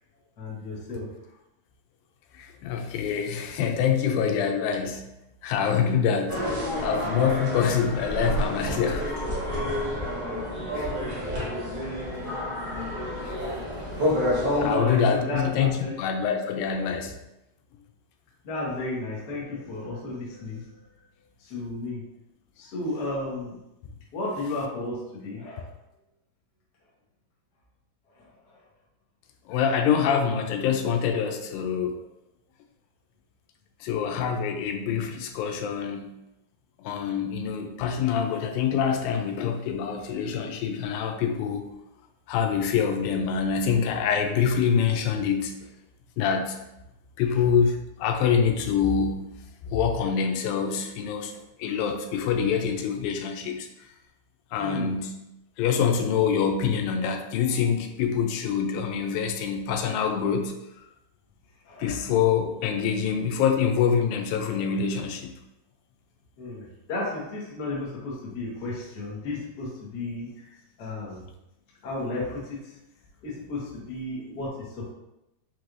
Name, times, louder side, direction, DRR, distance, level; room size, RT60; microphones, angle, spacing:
voice 1, 0.4-1.1 11.8-12.1 14.6-16.0 18.4-20.6 21.4-22.0 22.6-23.6 24.1-25.7 28.2-28.6 47.3-47.4 54.6-54.9 61.7-62.0 66.4-71.2 71.8-72.7 73.2-74.9, left 2 dB, 65° left, -5 dB, 1.0 m, -33 dB
voice 2, 2.3-5.0 5.4-6.4 6.8-9.2 10.7-11.0 13.2-13.4 14.6-15.7 16.0-17.2 29.5-32.0 33.8-36.2 36.8-41.7 42.3-45.5 46.2-46.6 47.2-49.3 49.6-51.3 51.6-53.7 54.5-55.1 55.6-60.5 61.8-65.3, left 7 dB, 90° left, 4 dB, 2.3 m, -25 dB
sound 1, 6.3-14.7, left 1 dB, 55° right, 1.2 m, -29 dB
6.0 x 3.1 x 2.5 m, 0.89 s
omnidirectional pair, 4.0 m